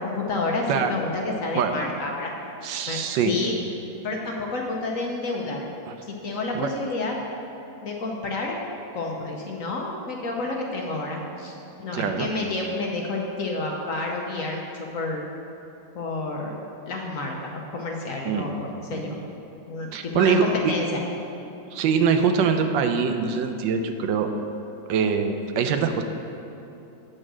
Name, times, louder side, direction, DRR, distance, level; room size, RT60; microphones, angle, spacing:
voice 1, 0.0-2.3 2.9-3.5 4.0-5.7 6.1-7.1 7.8-8.6 8.9-14.6 14.9-15.2 15.9-16.6 16.9-19.2 19.7-21.0, left 2 dB, 60° left, 0 dB, 1.0 m, -29 dB
voice 2, 2.6-3.4 5.9-6.0 6.5-6.7 11.9-12.3 18.2-18.6 18.9-19.0 19.9-20.5 21.7-24.3 24.9-26.0, right 6 dB, 80° right, 6 dB, 1.3 m, -23 dB
8.7 x 5.3 x 6.1 m, 2.8 s
omnidirectional pair, 2.0 m